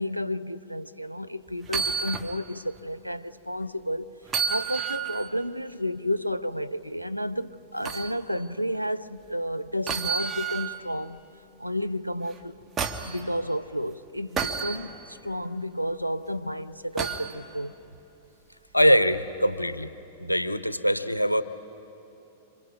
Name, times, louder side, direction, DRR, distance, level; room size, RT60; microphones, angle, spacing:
voice 1, 0.0-4.2 4.5-11.2 11.6-12.6 13.0-17.8, equal, 90° right, 0.5 m, -31 dB
sound 1, 1.6-2.3 2.8-2.9 4.3-5.3 7.8-8.1 9.9-10.8 12.3-13.2 14.4-14.8 17.0-17.3 19.1-19.3, right 6 dB, 20° right, 1.5 m, -30 dB
voice 2, 18.7-19.9 20.2-21.4, equal, 85° left, 0.8 m, -22 dB
26.5 x 26.5 x 5.9 m
figure-of-eight pair, 95°, 0 cm